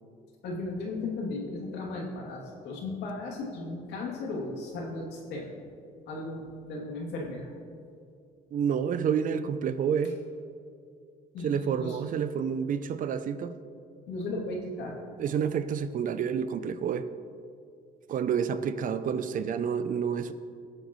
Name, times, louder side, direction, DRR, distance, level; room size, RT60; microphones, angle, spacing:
voice 1, 0.4-5.7 6.1-7.5 11.3-12.0 14.1-14.9, left 2 dB, 80° left, -3 dB, 2.9 m, -36 dB
voice 2, 8.5-10.2 11.4-13.5 15.2-17.1 18.1-20.3, right 7 dB, 50° right, 12 dB, 0.6 m, -29 dB
19.0 x 8.1 x 3.2 m, 2.4 s
cardioid pair, 110°, 17 cm